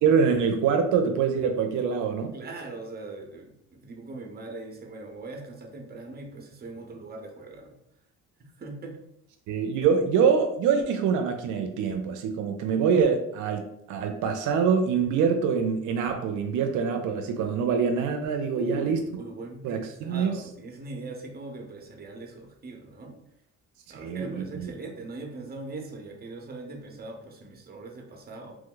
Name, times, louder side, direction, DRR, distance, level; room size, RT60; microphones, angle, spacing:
voice 1, 0.0-2.3 9.5-19.0 19.6-20.3 23.9-24.7, right 6 dB, 85° right, 5 dB, 0.5 m, -25 dB
voice 2, 2.3-7.7 8.6-9.0 18.5-23.2 23.9-28.5, right 2 dB, 30° right, 2 dB, 0.8 m, -40 dB
3.0 x 2.1 x 3.8 m, 0.74 s
cardioid pair, 90°, 30 cm